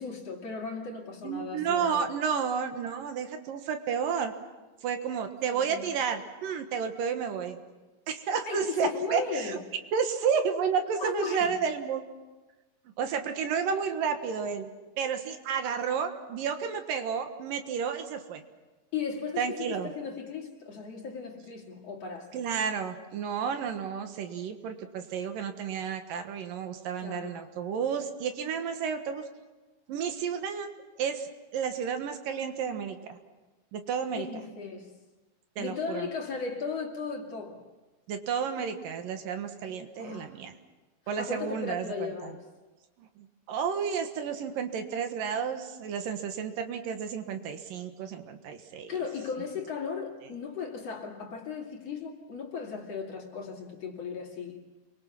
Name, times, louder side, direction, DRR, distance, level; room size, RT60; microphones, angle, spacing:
voice 1, 0.0-2.1 5.5-5.9 8.4-9.6 11.0-11.5 18.9-22.5 27.0-27.6 34.1-35.0 35.6-37.7 39.9-40.4 41.2-42.5 48.9-54.7, left 5 dB, 50° left, 3.3 m, -36 dB
voice 2, 1.2-4.3 4.8-7.6 8.1-9.6 9.9-12.0 13.0-14.7 15.0-18.4 19.4-19.9 22.3-29.2 29.9-30.7 31.0-33.2 33.7-34.3 35.6-36.1 38.1-40.5 41.1-42.3 43.0-48.9, right 6 dB, 80° right, 3.1 m, -31 dB
29.5 x 23.5 x 5.9 m
omnidirectional pair, 4.0 m